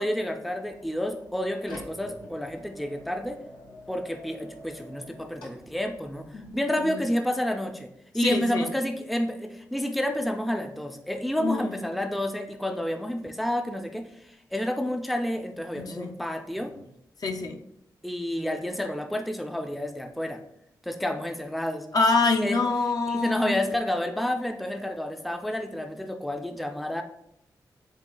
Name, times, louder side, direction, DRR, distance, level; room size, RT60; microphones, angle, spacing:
voice 1, 0.0-3.4 3.9-16.7 18.0-20.4 20.8-21.9 22.4-22.6 23.1-27.0, left 1 dB, ahead, 5 dB, 0.4 m, -30 dB
sound 1, 0.6-6.6, left 1 dB, 85° left, 1.0 m, -47 dB
voice 2, 6.3-7.0 8.2-8.7 11.4-11.7 15.8-16.1 17.2-17.6 21.9-23.6, left 3 dB, 55° left, 3 dB, 0.5 m, -26 dB
6.9 x 2.4 x 2.2 m, 0.78 s
cardioid pair, 60°, 8 cm